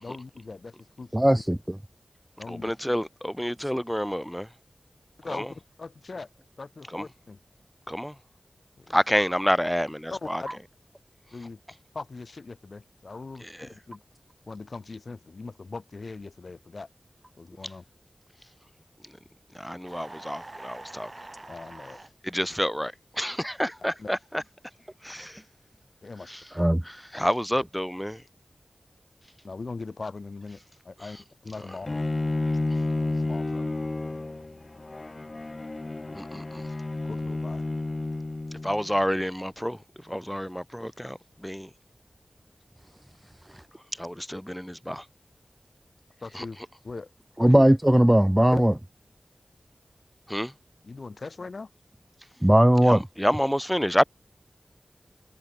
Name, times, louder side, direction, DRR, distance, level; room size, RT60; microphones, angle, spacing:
voice 1, 0.0-1.4 2.4-2.7 5.2-6.3 6.6-7.4 8.8-9.0 10.1-10.5 11.3-11.6 11.9-14.0 14.5-16.9 17.4-17.8 21.5-22.0 24.0-24.1 26.0-26.7 29.4-30.6 30.9-31.9 33.1-34.2 37.1-37.7 46.2-46.6 46.8-47.1 47.4-47.7 48.5-48.6 50.8-51.7, left 3 dB, 70° left, 1.9 m, -40 dB
voice 2, 1.1-1.6 26.6-26.8 43.5-43.6 47.4-48.7 52.4-53.0, right 1 dB, 10° right, 0.3 m, -18 dB
voice 3, 2.5-4.5 5.3-5.5 6.9-7.0 7.9-8.1 8.9-10.4 13.6-13.7 19.5-21.1 22.2-24.4 25.0-25.4 26.3-26.4 27.1-28.2 36.1-36.6 38.6-39.8 40.0-41.7 44.0-45.0 46.3-46.4 50.3-50.5 52.9-54.0, equal, 5° left, 1.5 m, -28 dB
sound 1, 19.8-22.1, right 2 dB, 35° right, 6.5 m, -44 dB
Bowed string instrument, 31.9-38.9, left 2 dB, 45° left, 1.5 m, -31 dB
wide cardioid pair, 55°, 0 cm